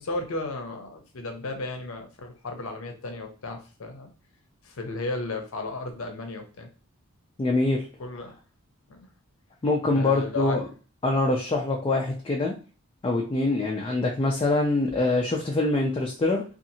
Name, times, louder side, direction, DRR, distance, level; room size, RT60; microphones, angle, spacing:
voice 1, 0.0-4.1 4.6-6.7 8.0-8.3 8.9-9.0 9.8-10.6, left 2 dB, 70° left, 5 dB, 0.6 m, -34 dB
voice 2, 7.4-7.9 9.6-10.6 11.0-12.5 13.0-16.4, left 2 dB, 25° left, 0 dB, 0.3 m, -24 dB
2.7 x 2.4 x 2.7 m, 0.36 s
head